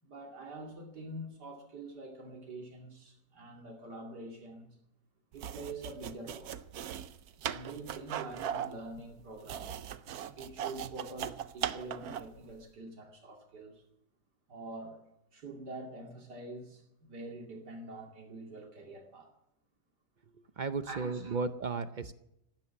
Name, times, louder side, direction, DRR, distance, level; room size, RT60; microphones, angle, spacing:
voice 1, 0.0-4.7 5.3-6.6 7.4-9.8 10.3-13.8 14.5-15.0 15.3-19.3 20.8-21.4, right 2 dB, 85° right, 3.0 m, -45 dB
sound 1, 5.3-12.4, right 9 dB, 70° right, 1.2 m, -39 dB
voice 2, 20.6-22.1, right 4 dB, 55° right, 0.5 m, -34 dB
15.0 x 12.5 x 7.3 m
omnidirectional pair, 1.7 m